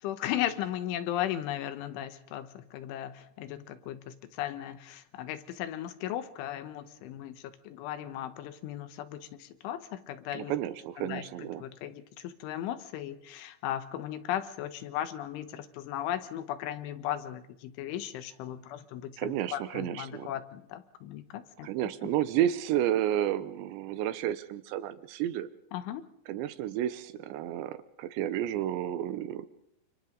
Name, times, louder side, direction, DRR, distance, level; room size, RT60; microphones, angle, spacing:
voice 1, 0.0-10.5 11.0-11.3 11.6-21.7 25.7-26.0, left 12 dB, 80° left, 11 dB, 3.6 m, -36 dB
voice 2, 10.3-11.6 19.2-20.3 21.6-25.5 26.3-29.5, right 11 dB, 75° right, 13 dB, 3.1 m, -31 dB
30.0 x 27.0 x 3.9 m, 0.71 s
omnidirectional pair, 5.5 m